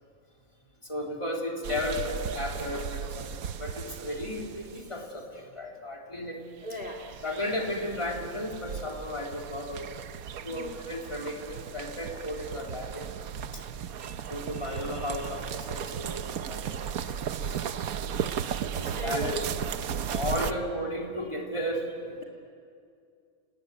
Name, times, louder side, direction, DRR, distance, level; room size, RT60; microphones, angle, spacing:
voice 1, 0.9-3.3 3.6-6.4 7.2-9.9 10.4-13.0 13.5-13.6 14.0-17.6 18.7-19.3 19.6-19.7 20.1-22.2, left 1 dB, 20° left, 0 dB, 3.6 m, -34 dB
sound 1, 1.6-4.9 6.7-20.5, right 8 dB, 80° right, 1.3 m, -36 dB
voice 2, 6.6-7.0 10.5-10.7 18.9-19.8 20.4-20.6, right 1 dB, 40° left, 0 dB, 2.7 m, -37 dB
28.5 x 19.5 x 9.7 m, 2.4 s
omnidirectional pair, 1.5 m